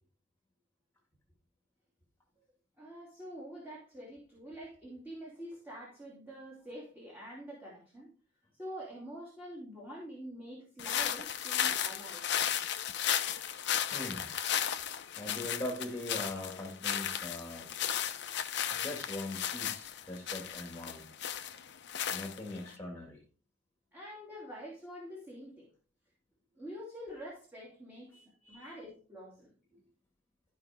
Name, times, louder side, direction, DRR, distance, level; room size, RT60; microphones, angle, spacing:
voice 1, 2.8-8.1 8.5-12.2 23.9-25.7 26.6-28.1 28.5-29.5, equal, 10° right, -6 dB, 2.7 m, -46 dB
sound 1, 10.8-22.7, left 9 dB, 55° left, 0.7 m, -35 dB
voice 2, 13.9-14.3 15.2-17.7 18.8-21.0 22.1-23.2 28.1-28.8, left 1 dB, 10° left, 0 dB, 1.9 m, -41 dB
13.0 x 5.2 x 3.5 m, 0.39 s
head